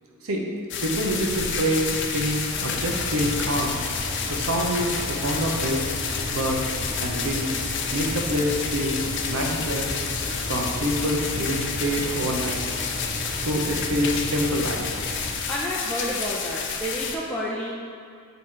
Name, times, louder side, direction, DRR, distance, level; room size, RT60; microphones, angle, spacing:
sound 1, 0.7-17.2, left 6 dB, 60° left, 0.5 m, -30 dB
voice 1, 0.8-3.8 4.3-5.8 6.3-6.6 7.0-7.5 7.9-9.0 9.3-9.9 10.5-12.6 13.4-14.8, equal, 80° right, 0 dB, 0.9 m, -26 dB
sound 2, 2.5-15.3, equal, 10° right, 1.4 m, -35 dB
voice 2, 15.5-17.7, equal, 5° left, -6 dB, 0.5 m, -30 dB
7.8 x 3.1 x 4.6 m, 2.3 s
head